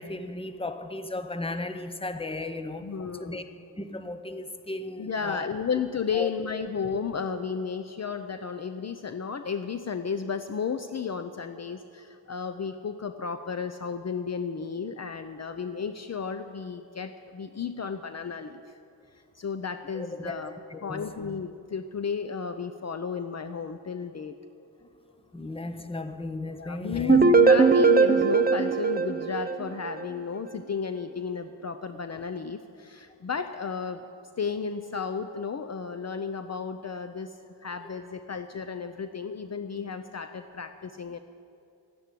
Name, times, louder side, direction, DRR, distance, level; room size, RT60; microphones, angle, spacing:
voice 1, 0.0-2.9 3.2-3.4 3.8-5.5 6.1-6.3 19.9-21.2 25.3-27.2 37.8-37.9, left 2 dB, 15° left, 0.9 m, -35 dB
voice 2, 2.8-3.4 5.0-18.8 19.3-20.5 20.8-24.4 26.6-34.0 34.4-41.2, left 6 dB, 40° left, 0.7 m, -33 dB
sound 1, 27.1-30.0, right 4 dB, 25° right, 0.8 m, -20 dB
12.5 x 10.0 x 9.2 m
cardioid pair, 85°, 40 cm